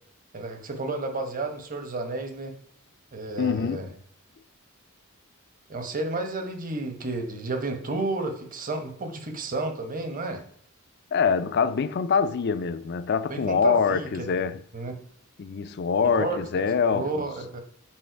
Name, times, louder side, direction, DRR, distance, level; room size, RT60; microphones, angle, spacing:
voice 1, 0.3-2.5 3.1-3.9 5.7-10.4 13.3-14.3 14.7-15.0 16.0-16.4 16.9-17.6, right 2 dB, 40° right, 1.0 m, -31 dB
voice 2, 3.4-3.8 11.1-14.6 15.4-17.2, left 6 dB, 50° left, 0.4 m, -24 dB
7.5 x 4.2 x 4.5 m
head